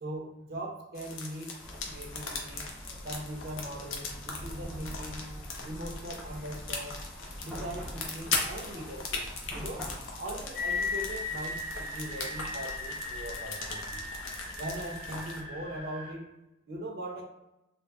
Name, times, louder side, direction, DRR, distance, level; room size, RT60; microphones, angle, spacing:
voice 1, 0.0-1.5 1.9-2.7 3.0-5.3 5.6-7.0 7.4-9.8 10.2-14.0 14.6-16.2 16.7-17.2, right 1 dB, 55° right, 0 dB, 0.6 m, -40 dB
sound 1, 0.9-15.4, left 4 dB, 85° left, 0.7 m, -39 dB
Chatter / Car passing by / Traffic noise roadway noise, 1.6-15.9, equal, ahead, 0.6 m, -45 dB
sound 2, 10.5-16.1, left 3 dB, 40° left, 1.0 m, -37 dB
3.5 x 2.0 x 3.4 m, 0.91 s
head